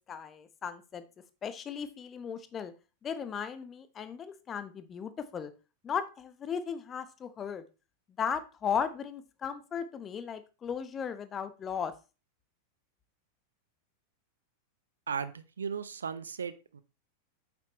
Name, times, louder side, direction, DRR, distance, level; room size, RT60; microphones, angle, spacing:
voice 1, 0.1-1.0 1.4-2.7 3.0-5.5 5.8-7.6 8.2-11.9, left 7 dB, 25° left, 12 dB, 0.9 m, -36 dB
voice 2, 15.1-16.8, right 6 dB, 70° right, 14 dB, 0.6 m, -36 dB
8.8 x 7.1 x 3.0 m, 0.31 s
figure-of-eight pair, 90°, 0 cm